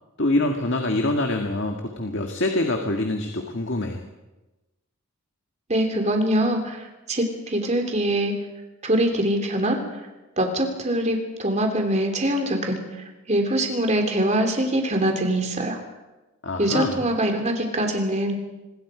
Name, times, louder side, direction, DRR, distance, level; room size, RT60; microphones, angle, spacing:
voice 1, 0.2-4.0 16.4-17.0, left 2 dB, 55° left, 3 dB, 1.9 m, -25 dB
voice 2, 5.7-8.3 8.8-10.0 10.4-12.8 13.3-15.8 16.6-18.4, right 1 dB, 30° right, 4 dB, 3.2 m, -23 dB
25.5 x 21.0 x 5.1 m, 1.1 s
head